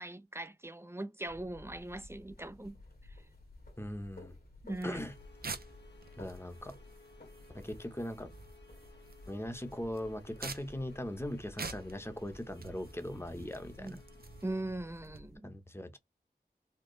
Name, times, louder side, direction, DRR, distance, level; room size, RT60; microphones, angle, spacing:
voice 1, 0.0-2.7 3.1-3.2 4.6-5.0 13.8-14.0 14.4-15.5, right 1 dB, 15° right, 0.5 m, -40 dB
sound 1, 1.3-15.4, left 2 dB, 65° left, 1.8 m, -55 dB
voice 2, 3.8-4.3 4.8-5.1 6.2-6.7 7.5-8.3 9.3-14.0 15.4-16.0, left 1 dB, 15° left, 1.0 m, -40 dB
sound 2, 4.7-15.2, right 4 dB, 65° right, 0.7 m, -48 dB
sound 3, 4.9-14.6, left 3 dB, 90° left, 1.4 m, -60 dB
4.4 x 2.2 x 3.1 m
wide cardioid pair, 65°, 17 cm